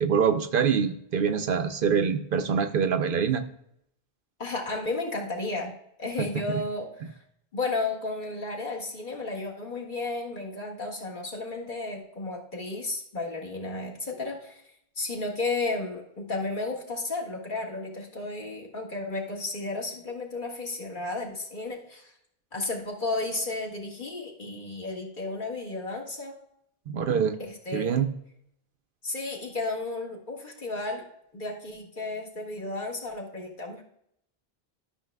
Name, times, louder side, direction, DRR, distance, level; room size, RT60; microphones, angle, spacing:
voice 1, 0.0-3.4 6.2-6.3 26.9-27.4 27.7-28.1, right 7 dB, 65° right, 9 dB, 0.7 m, -25 dB
voice 2, 4.4-5.7 6.0-7.2 7.5-14.6 15.0-22.1 22.5-26.4 27.4-28.0 29.0-31.0 31.3-33.8, left 3 dB, 50° left, -1 dB, 1.8 m, -33 dB
12.5 x 6.2 x 2.3 m, 0.74 s
omnidirectional pair, 1.0 m